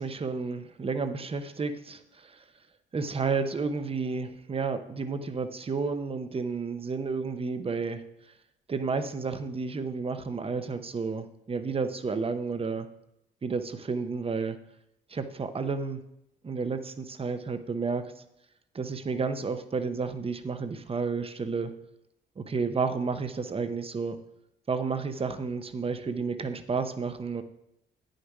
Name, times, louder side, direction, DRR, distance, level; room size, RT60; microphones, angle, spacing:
voice 1, 0.0-2.0 2.9-8.0 8.7-12.9 13.4-14.6 15.1-16.0 16.4-18.0 18.7-21.7 22.4-24.2 24.7-27.4, right 4 dB, 30° right, 9 dB, 0.9 m, -31 dB
9.3 x 6.6 x 4.8 m, 0.83 s
cardioid pair, 90°, 20 cm